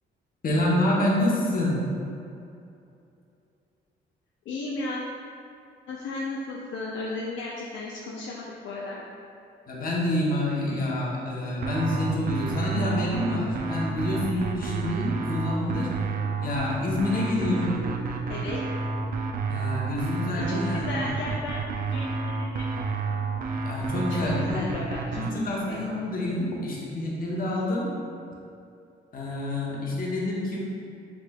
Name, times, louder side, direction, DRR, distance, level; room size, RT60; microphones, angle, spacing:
voice 1, 0.4-1.7 9.7-15.9 16.4-17.8 19.5-21.1 23.5-24.6 25.1-27.9 29.1-30.6, left 1 dB, 45° left, -4 dB, 0.9 m, -27 dB
voice 2, 4.5-5.0 5.9-9.0 18.3-18.6 20.5-22.7 23.9-25.8, left 2 dB, 70° left, -3 dB, 0.4 m, -35 dB
sound 1, 11.6-25.3, right 4 dB, 45° right, 0.4 m, -30 dB
4.8 x 3.3 x 2.2 m, 2.6 s
cardioid pair, 90°, 20 cm